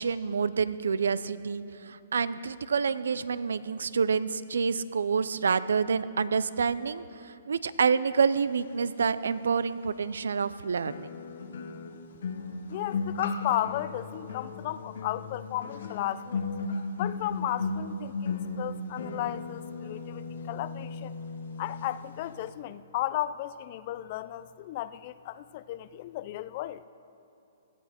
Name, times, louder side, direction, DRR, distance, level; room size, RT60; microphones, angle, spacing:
voice 1, 0.0-11.1, right 5 dB, 80° right, 16 dB, 0.5 m, -28 dB
sound 1, 9.5-9.6 10.8-21.9 22.2-22.5, left 4 dB, 70° left, 1.2 m, -36 dB
voice 2, 12.7-16.4 17.0-21.1 21.6-26.8, left 14 dB, 45° left, 16 dB, 0.5 m, -34 dB
17.0 x 12.5 x 4.4 m, 2.9 s
hypercardioid pair, 135°, 0 cm